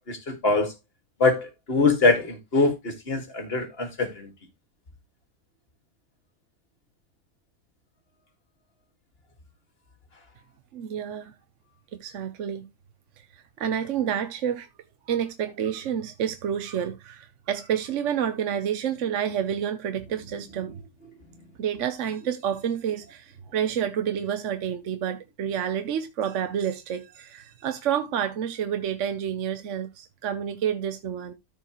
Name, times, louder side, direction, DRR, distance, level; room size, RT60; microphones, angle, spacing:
voice 1, 0.1-0.7 1.2-4.3, left 3 dB, 35° left, 2.1 m, -23 dB
voice 2, 10.7-11.3 11.9-12.6 13.6-14.7 15.1-20.7 21.6-31.3, right 9 dB, 55° right, 0.9 m, -29 dB
13.5 x 4.7 x 3.0 m
omnidirectional pair, 1.8 m